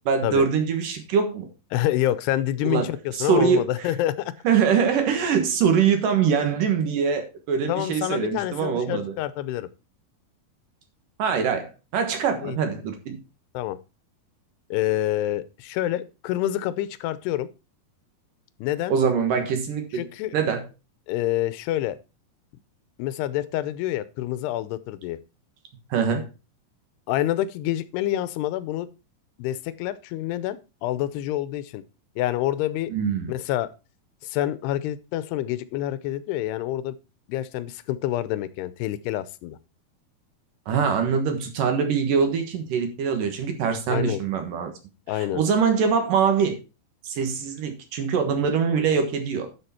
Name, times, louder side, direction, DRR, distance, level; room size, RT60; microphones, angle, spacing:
voice 1, 0.1-1.5 2.6-3.9 4.4-9.2 11.2-13.2 18.9-20.0 20.3-20.7 25.9-26.3 32.9-33.3 40.7-44.7 45.1-46.6 47.0-49.5, right 6 dB, 65° right, 6 dB, 2.8 m, -23 dB
voice 2, 1.7-4.3 7.7-9.7 12.4-12.6 13.5-13.8 14.7-17.5 18.6-19.0 19.9-20.3 21.1-22.0 23.0-25.2 27.1-28.9 29.4-31.8 32.2-32.9 33.3-33.7 34.2-37.0 37.3-39.6 43.9-44.2 45.1-45.4, left 13 dB, 90° left, 16 dB, 2.8 m, -27 dB
11.0 x 6.3 x 4.3 m, 0.30 s
omnidirectional pair, 4.6 m